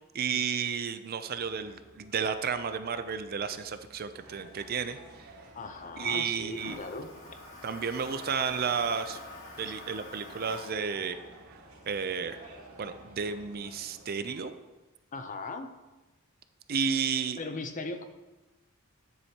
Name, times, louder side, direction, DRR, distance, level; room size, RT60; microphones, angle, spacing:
voice 1, 0.1-5.0 6.0-6.8 7.6-9.2 9.6-11.2 11.9-12.4 12.8-14.5 16.7-17.4, right 6 dB, 45° right, 10 dB, 0.5 m, -32 dB
Toilet flush, 1.3-13.5, left 2 dB, 65° left, 3.0 m, -50 dB
sound 1, 4.1-14.4, right 2 dB, 85° right, 1.8 m, -53 dB
voice 2, 5.5-7.1 9.6-9.7 15.1-15.7 17.4-18.0, left 3 dB, 35° left, 8 dB, 0.6 m, -38 dB
9.9 x 7.8 x 2.9 m, 1.1 s
head